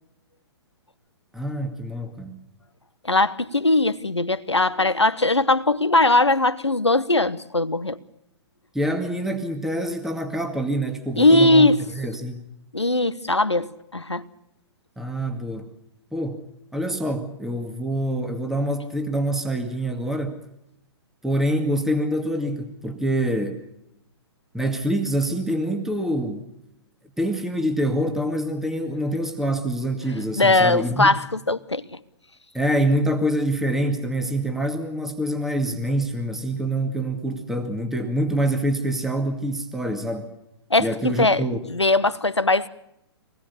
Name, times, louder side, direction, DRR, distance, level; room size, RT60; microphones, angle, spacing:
voice 1, 1.3-2.4 8.7-12.5 15.0-15.7 16.1-16.4 16.7-20.4 21.2-23.6 24.5-26.4 27.2-31.1 32.5-40.3 40.8-41.6, right 1 dB, 5° right, 2.2 m, -25 dB
voice 2, 3.0-8.0 11.2-11.8 12.7-14.2 30.4-31.8 40.7-41.4 41.7-42.7, left 2 dB, 90° left, 1.2 m, -20 dB
24.0 x 19.5 x 6.8 m
figure-of-eight pair, 120°, 14 cm